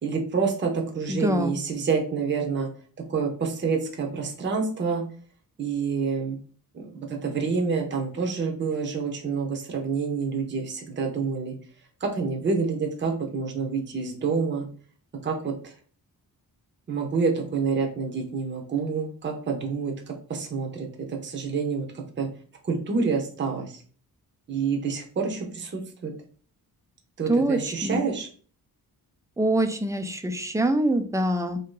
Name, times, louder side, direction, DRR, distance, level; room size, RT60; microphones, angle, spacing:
voice 1, 0.0-2.7 3.1-5.0 5.6-6.4 6.7-11.5 12.0-14.7 15.2-15.7 16.9-22.3 22.6-23.8 24.5-26.1 27.2-28.3, right 5 dB, 30° right, 2 dB, 0.7 m, -28 dB
voice 2, 1.1-1.5 27.3-28.0 29.4-31.6, right 1 dB, 10° right, 8 dB, 0.3 m, -24 dB
2.8 x 2.7 x 3.7 m, 0.43 s
wide cardioid pair, 130°, 36 cm